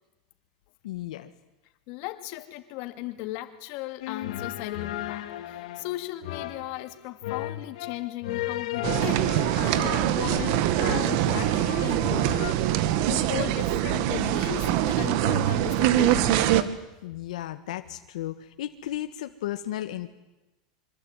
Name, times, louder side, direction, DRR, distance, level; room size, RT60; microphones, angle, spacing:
voice 1, 0.8-1.3 17.0-20.1, left 13 dB, 85° left, 8 dB, 1.5 m, -34 dB
voice 2, 1.9-12.6 13.1-16.6, left 16 dB, 50° left, 8 dB, 2.5 m, -37 dB
sound 1, 4.0-12.5, left 13 dB, 70° left, 2.8 m, -35 dB
sound 2, 8.8-16.6, right 12 dB, 55° right, 1.7 m, -24 dB
26.0 x 25.0 x 9.1 m, 1.0 s
supercardioid pair, 155°, 4 cm